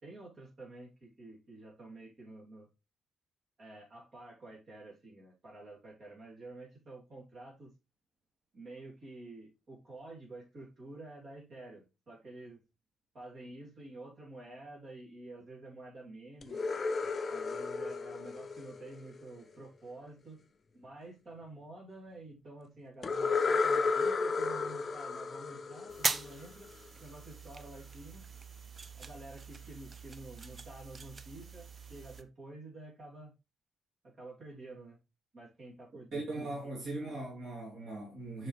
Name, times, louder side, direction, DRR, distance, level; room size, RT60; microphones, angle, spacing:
voice 1, 0.0-2.7 3.6-7.7 8.5-12.6 13.1-16.6 17.3-20.4 20.7-26.7 27.0-28.3 29.0-33.3 34.0-35.0 35.3-36.1, right 2 dB, 45° right, 3.1 m, -49 dB
sound 1, 16.4-19.4 23.0-26.7, left 4 dB, 35° left, 0.6 m, -33 dB
sound 2, 25.9-32.2, right 4 dB, 30° right, 0.5 m, -41 dB
voice 2, 36.1-38.5, right 2 dB, 60° right, 2.8 m, -39 dB
7.4 x 5.4 x 3.3 m
cardioid pair, 155°, 0 cm